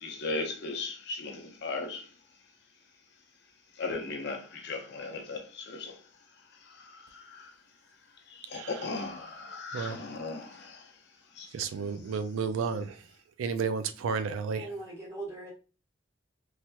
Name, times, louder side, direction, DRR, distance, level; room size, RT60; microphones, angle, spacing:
voice 1, 0.0-2.0 3.8-5.9 7.1-7.5 8.5-10.8 11.4-11.5, left 3 dB, 55° left, 0.6 m, -37 dB
voice 2, 8.5-8.9 9.7-10.0 11.5-13.0 13.4-14.7, right 5 dB, 85° right, 0.3 m, -32 dB
voice 3, 14.5-15.5, right 2 dB, 15° right, 1.3 m, -40 dB
3.2 x 2.8 x 2.2 m
head